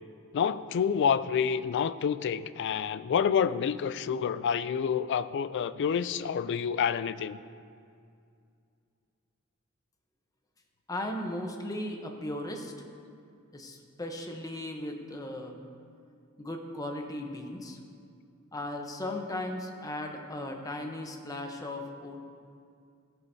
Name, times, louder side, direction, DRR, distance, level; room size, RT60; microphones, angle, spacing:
voice 1, 0.3-7.4, left 7 dB, 55° left, 15 dB, 0.3 m, -28 dB
voice 2, 10.9-12.7 13.5-15.6 16.4-17.8 18.5-22.2, left 1 dB, 15° left, 3 dB, 0.8 m, -37 dB
15.0 x 9.1 x 2.7 m, 2.3 s
head